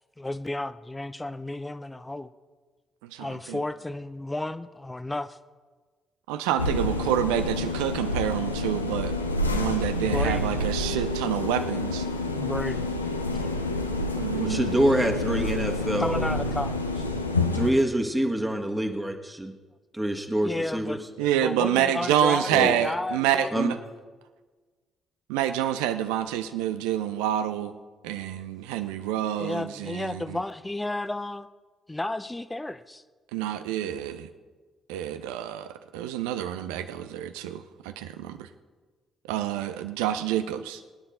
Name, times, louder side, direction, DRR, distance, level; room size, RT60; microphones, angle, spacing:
voice 1, 0.2-2.3 3.2-5.3 10.0-10.5 12.3-12.9 13.3-13.4 16.0-17.0 20.4-21.0 21.4-23.5 29.4-31.5 31.9-33.0, left 2 dB, 15° left, 13 dB, 0.7 m, -32 dB
voice 2, 3.0-3.6 6.3-9.1 9.5-12.1 14.2-14.7 21.2-23.7 25.3-27.7 28.0-30.4 33.3-34.3 34.9-38.5 39.3-40.8, right 11 dB, 70° right, 10 dB, 0.7 m, -28 dB
sound 1, 6.6-17.7, left 2 dB, 90° left, 0.6 m, -28 dB
voice 3, 14.3-16.3 17.5-19.5 19.9-21.1 22.5-22.8 23.5-23.7, right 1 dB, 10° right, 2 dB, 1.7 m, -26 dB
23.0 x 9.9 x 3.9 m, 1.4 s
figure-of-eight pair, 45°, 0 cm